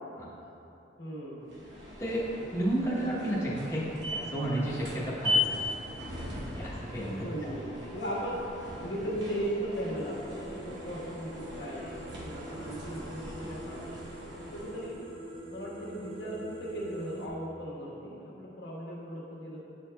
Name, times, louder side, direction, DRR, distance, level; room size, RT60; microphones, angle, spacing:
voice 1, 1.0-1.6 7.2-8.5 8.8-15.0 15.5-19.6, right 1 dB, 85° left, -5 dB, 1.3 m, -37 dB
sound 1, 1.5-15.0, left 2 dB, 85° right, 1.0 m, -38 dB
voice 2, 2.5-3.8 4.1-5.7 6.5-7.5, right 1 dB, 15° left, -8 dB, 0.9 m, -32 dB
sound 2, 9.9-17.3, right 1 dB, 30° right, 0.5 m, -45 dB
9.0 x 4.6 x 2.3 m, 3.0 s
head